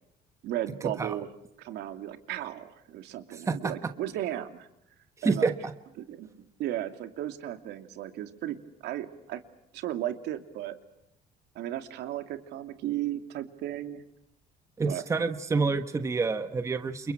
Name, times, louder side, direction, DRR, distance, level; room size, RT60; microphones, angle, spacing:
voice 1, 0.4-1.3 1.6-4.7 5.2-5.5 6.1-9.4 9.7-10.8 11.5-14.0 14.8-15.0, right 12 dB, 75° right, 8 dB, 2.7 m, -35 dB
voice 2, 3.3-3.7 5.2-5.7 14.8-17.1, right 4 dB, 15° right, 8 dB, 1.3 m, -28 dB
29.5 x 29.0 x 6.1 m, 0.81 s
cardioid pair, 160°, 18 cm